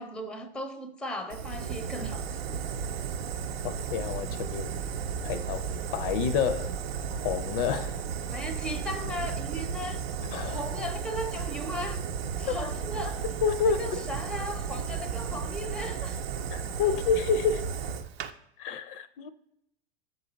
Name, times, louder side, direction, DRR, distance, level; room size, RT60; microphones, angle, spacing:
voice 1, 0.0-2.6 8.3-10.0 10.4-12.0 12.4-13.2 13.8-16.2, left 1 dB, 5° left, 0.5 m, -37 dB
Fire, 1.3-18.3, right 7 dB, 75° right, 0.6 m, -34 dB
voice 2, 3.6-4.7 5.2-6.8 7.1-8.0 10.2-10.6 12.5-12.6 13.4-14.0 16.5-17.7 18.6-19.3, left 6 dB, 60° left, 0.5 m, -29 dB
7.1 x 3.9 x 3.9 m
hypercardioid pair, 100°, 31 cm